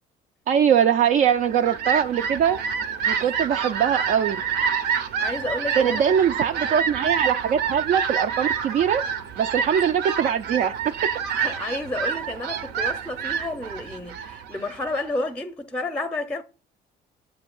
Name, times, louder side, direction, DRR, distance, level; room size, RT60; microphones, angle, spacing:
voice 1, 0.5-2.6 3.1-4.4 5.8-9.0 9.4-10.7, right 8 dB, 55° right, 0.4 m, -22 dB
Fowl, 1.2-15.2, right 7 dB, 80° right, 0.7 m, -28 dB
voice 2, 5.2-6.0 11.3-16.4, left 2 dB, 5° left, 0.6 m, -31 dB
7.7 x 2.7 x 5.3 m
cardioid pair, 110°, 17 cm